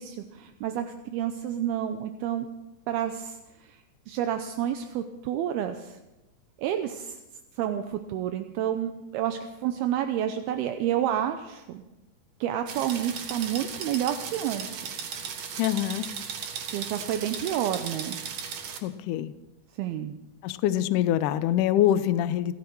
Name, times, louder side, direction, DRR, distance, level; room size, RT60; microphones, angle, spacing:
voice 1, 0.0-2.5 2.9-3.8 4.1-6.0 6.6-7.2 7.6-11.8 12.4-14.8 16.7-18.2 19.8-20.2, right 10 dB, 80° right, 7 dB, 2.6 m, -30 dB
sound 1, 12.7-18.8, right 7 dB, 60° right, 2.5 m, -36 dB
voice 2, 15.6-16.1 18.8-19.3 20.4-22.5, left 12 dB, 85° left, 12 dB, 1.8 m, -24 dB
29.5 x 10.5 x 4.6 m, 1.0 s
omnidirectional pair, 4.6 m